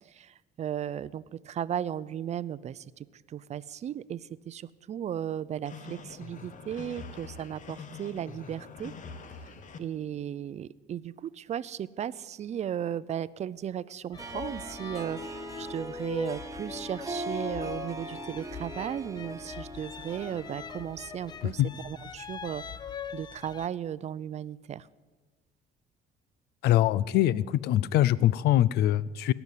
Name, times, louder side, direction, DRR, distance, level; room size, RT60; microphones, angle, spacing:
voice 1, 0.0-8.9 9.8-22.6 23.1-24.9, right 9 dB, 40° right, 18 dB, 0.5 m, -36 dB
sound 1, 5.6-9.8, left 5 dB, 50° left, 1.2 m, -44 dB
sound 2, 14.1-23.7, left 6 dB, 25° left, 0.5 m, -42 dB
Harp, 14.1-21.9, right 1 dB, 20° right, 0.9 m, -41 dB
voice 2, 26.6-29.3, left 13 dB, 75° left, 21 dB, 0.5 m, -23 dB
18.0 x 7.0 x 9.3 m, 1.3 s
cardioid pair, 110°, 17 cm